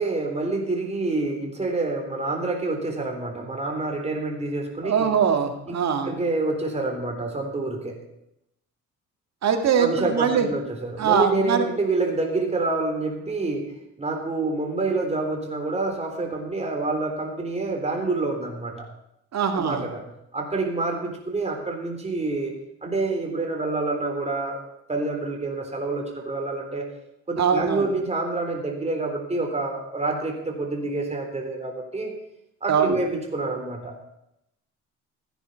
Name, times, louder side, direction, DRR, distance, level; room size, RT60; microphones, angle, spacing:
voice 1, 0.0-5.1 5.7-5.8 6.0-8.0 9.8-13.7 14.0-18.9 19.5-20.1 20.3-24.6 24.9-26.9 27.3-32.1 32.6-34.0, right 3 dB, 20° right, 2 dB, 3.8 m, -27 dB
voice 2, 4.8-6.1 9.4-10.5 11.0-11.6 19.3-19.8 27.4-27.8 32.7-33.0, right 7 dB, 60° right, 6 dB, 2.0 m, -22 dB
15.5 x 9.9 x 5.7 m, 0.81 s
cardioid pair, 90°, 30 cm